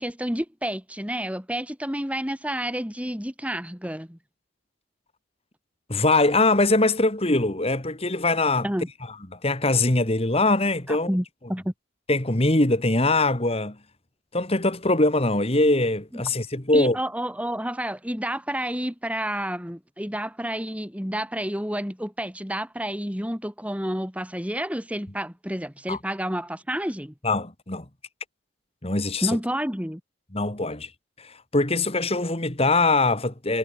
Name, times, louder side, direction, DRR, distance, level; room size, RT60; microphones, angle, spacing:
voice 1, 0.0-4.2 8.6-8.9 10.9-11.7 16.1-16.2 16.7-27.1 29.2-30.0, right 1 dB, 5° right, 4.5 m, -30 dB
voice 2, 5.9-8.7 9.3-11.1 12.1-13.8 14.3-17.0 25.9-26.0 27.2-27.9 28.8-29.4 30.3-30.9 31.2-33.6, left 2 dB, 30° left, 2.0 m, -22 dB
head